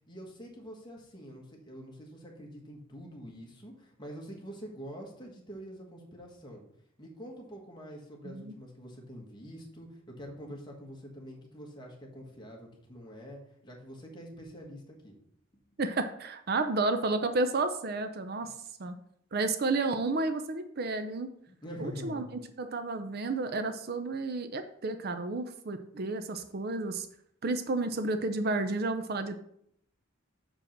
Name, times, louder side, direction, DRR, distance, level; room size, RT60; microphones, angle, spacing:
voice 1, 0.0-6.6 7.0-15.1 15.5-15.6 18.4-18.5 21.5-22.3, equal, 20° left, -1 dB, 1.6 m, -46 dB
voice 2, 15.8-18.5 18.8-19.0 19.3-21.3 21.8-22.2 22.6-27.1 27.4-29.4, right 3 dB, 50° right, 9 dB, 0.5 m, -31 dB
6.4 x 5.0 x 5.9 m, 0.71 s
head